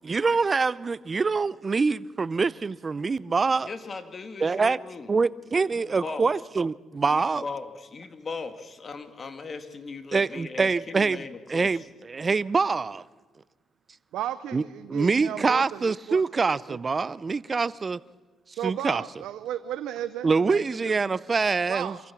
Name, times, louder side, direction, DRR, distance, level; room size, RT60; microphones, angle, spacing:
voice 1, 0.0-3.7 4.4-4.8 5.1-7.4 10.1-11.2 11.5-13.0 14.5-14.6 14.9-18.0 18.6-19.0 20.2-22.0, right 4 dB, 30° right, 0.5 m, -25 dB
voice 2, 3.6-5.1 5.7-6.3 7.1-11.9, left 4 dB, 40° left, 1.9 m, -38 dB
voice 3, 14.1-16.2 16.7-16.8 18.6-21.2 21.7-22.0, right 12 dB, 85° right, 0.6 m, -34 dB
25.5 x 14.5 x 7.1 m
cardioid pair, 90°, 0 cm